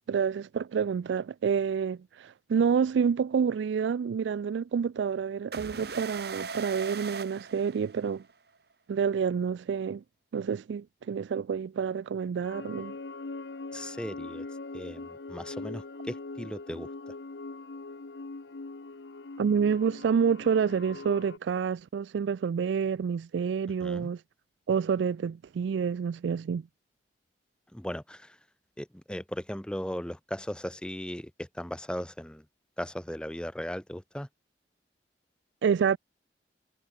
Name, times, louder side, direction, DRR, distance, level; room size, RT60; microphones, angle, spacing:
voice 1, 0.1-8.2 8.9-10.0 10.3-13.0 19.4-24.2 24.7-26.6 35.6-36.0, right 6 dB, 90° right, 0.3 m, -28 dB
sound 1, 5.5-8.3, right 5 dB, 65° right, 2.7 m, -39 dB
sound 2, 12.4-21.4, left 3 dB, 80° left, 0.9 m, -41 dB
voice 2, 13.7-14.5 14.7-17.1 23.8-24.1 27.7-28.4 28.8-32.5 32.8-34.3, equal, 5° left, 0.9 m, -37 dB
head